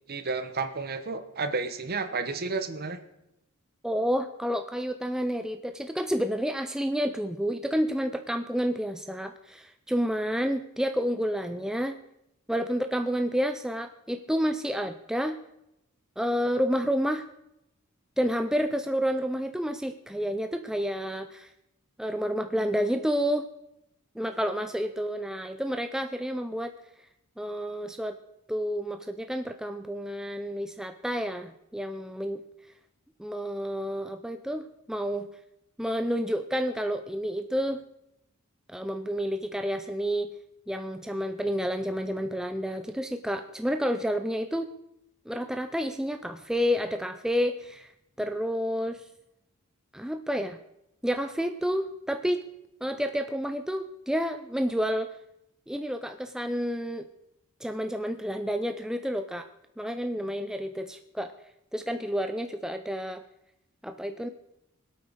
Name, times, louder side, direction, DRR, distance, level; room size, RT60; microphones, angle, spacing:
voice 1, 0.1-3.0, right 4 dB, 45° right, 9 dB, 1.1 m, -31 dB
voice 2, 3.8-12.0 12.5-15.4 16.2-17.3 18.2-21.5 22.0-23.4 24.2-26.7 27.4-28.2 28.5-32.4 33.2-35.3 35.8-37.8 38.7-40.3 40.7-44.7 45.3-47.9 48.2-49.0 49.9-50.6 51.0-52.4 52.8-55.1 55.7-57.1 57.6-59.5 59.8-61.3 61.7-63.2 63.8-64.3, equal, 5° right, 7 dB, 0.4 m, -30 dB
23.5 x 8.6 x 4.1 m, 0.83 s
head